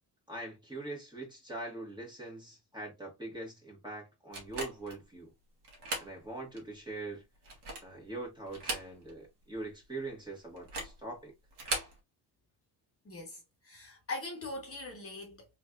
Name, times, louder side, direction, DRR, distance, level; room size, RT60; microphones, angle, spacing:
voice 1, 0.3-5.3 6.0-7.2 7.8-11.3, right 2 dB, 10° right, 1.6 m, -42 dB
sound 1, 4.3-5.0 5.6-6.1 6.6-6.7 7.3-8.0 8.5-9.3 9.5-9.6 10.6-11.0 11.5-12.0, right 2 dB, 70° right, 1.6 m, -38 dB
voice 2, 13.0-15.5, left 2 dB, 35° left, 1.3 m, -42 dB
3.3 x 3.2 x 2.5 m
cardioid pair, 105°, 42 cm